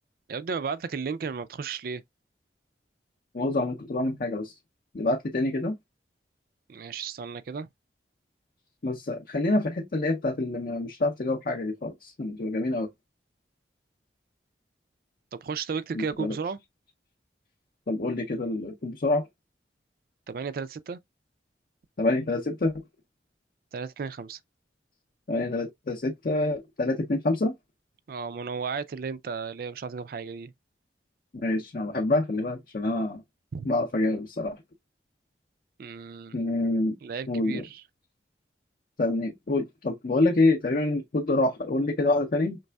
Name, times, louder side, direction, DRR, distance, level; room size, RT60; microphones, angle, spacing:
voice 1, 0.3-2.0 6.7-7.7 15.3-16.6 20.3-21.0 23.7-24.4 28.1-30.5 33.5-33.7 35.8-36.4 37.0-37.8, right 5 dB, 55° right, 0.4 m, -34 dB
voice 2, 3.3-4.5 4.9-5.8 8.8-12.9 15.9-16.4 17.9-19.3 22.0-22.7 25.3-27.5 31.3-33.2 33.6-34.6 36.3-36.9 37.3-37.6 39.0-42.6, left 2 dB, 50° left, 0.5 m, -26 dB
5.2 x 3.3 x 2.2 m
head